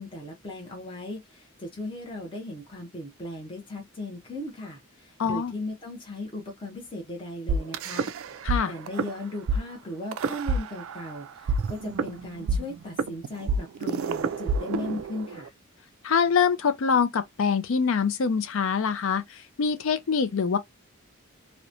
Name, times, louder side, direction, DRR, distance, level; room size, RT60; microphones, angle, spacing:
voice 1, 0.0-8.1 8.6-15.5, left 1 dB, 25° left, 0.7 m, -37 dB
voice 2, 5.2-5.5 8.4-8.7 16.0-20.6, left 6 dB, 70° left, 0.4 m, -24 dB
sound 1, 7.5-8.6 8.9-9.1 9.5-9.6 10.1-11.1 11.5-15.5, right 3 dB, 70° right, 0.3 m, -27 dB
2.9 x 2.1 x 2.4 m
head